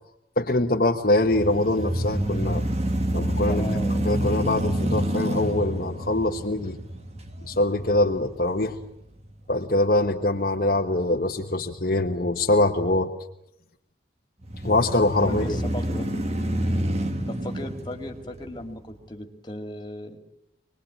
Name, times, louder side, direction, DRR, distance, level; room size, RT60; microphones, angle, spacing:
voice 1, 0.4-2.6 3.1-3.7 4.0-6.8 7.4-8.8 9.5-13.1 14.6-15.6, left 2 dB, 50° left, 1 dB, 1.2 m, -23 dB
sound 1, 1.2-9.3 9.8-9.9 14.4-18.9, right 1 dB, 35° right, 1.7 m, -28 dB
voice 2, 3.5-4.0 15.3-16.2 17.3-20.2, left 1 dB, 25° left, 4 dB, 2.4 m, -36 dB
26.0 x 20.5 x 8.8 m, 0.80 s
head